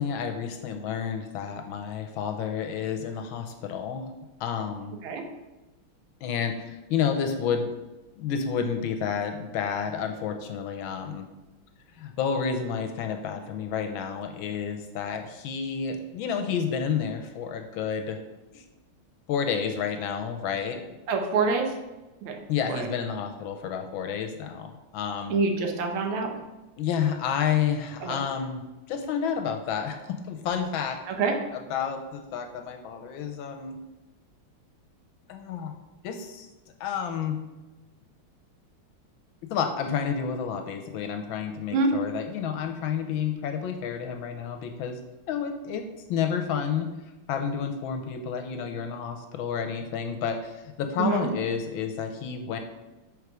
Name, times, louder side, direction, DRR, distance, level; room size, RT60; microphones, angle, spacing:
voice 1, 0.0-4.1 4.4-4.9 6.2-7.7 8.2-11.3 12.0-18.2 18.5-18.6 19.3-20.8 22.5-25.4 26.8-30.0 30.2-31.0 31.5-33.8 35.3-35.7 36.0-36.5 36.8-37.4 39.5-45.0 45.3-46.9 47.3-52.6, left 7 dB, 75° left, 6 dB, 1.3 m, -30 dB
voice 2, 21.1-21.7 22.2-22.4 22.7-22.9 25.3-26.3 28.0-28.1 31.1-31.3 41.7-41.9 51.0-51.3, right 4 dB, 75° right, 3 dB, 1.7 m, -26 dB
5.3 x 4.8 x 4.7 m, 1.1 s
omnidirectional pair, 2.4 m